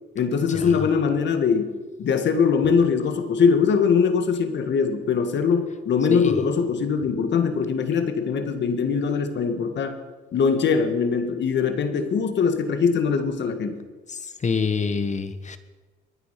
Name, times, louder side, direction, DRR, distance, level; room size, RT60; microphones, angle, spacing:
voice 1, 0.2-10.0 10.3-13.8, left 6 dB, 65° left, 8 dB, 1.8 m, -22 dB
voice 2, 14.4-15.6, left 5 dB, 35° left, 11 dB, 1.3 m, -26 dB
22.5 x 9.8 x 5.9 m, 1.3 s
cardioid pair, 90°, 20 cm